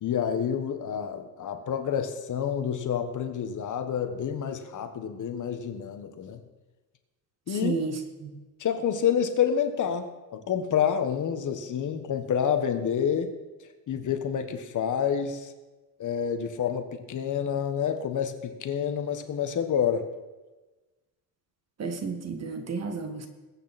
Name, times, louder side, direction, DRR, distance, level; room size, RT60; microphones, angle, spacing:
voice 1, 0.0-6.4 7.5-7.8 8.6-10.0 10.3-13.3 13.9-15.5 16.0-20.1, left 8 dB, 50° left, 7 dB, 1.4 m, -28 dB
voice 2, 7.6-8.3 21.8-23.3, right 4 dB, 40° right, 7 dB, 1.7 m, -32 dB
21.0 x 8.9 x 4.3 m, 1.2 s
cardioid pair, 125°, 39 cm